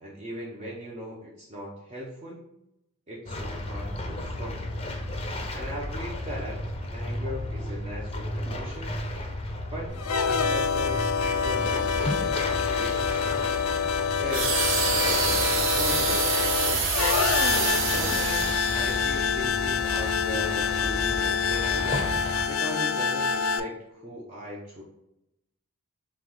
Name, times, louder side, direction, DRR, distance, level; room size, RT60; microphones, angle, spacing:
voice 1, 0.0-2.4 3.1-4.6 5.5-6.6 6.9-8.9 9.7-9.9 10.2-13.6 14.2-16.3 17.8-21.9 22.5-24.8, equal, 30° right, -5 dB, 0.7 m, -39 dB
sound 1, 3.3-22.5, left 1 dB, 25° left, 0.5 m, -34 dB
sound 2, 9.9-23.6, left 6 dB, 80° left, 0.4 m, -26 dB
sound 3, 14.3-19.3 19.9-20.1, right 5 dB, 65° right, 0.8 m, -27 dB
5.7 x 2.3 x 3.1 m, 0.84 s
head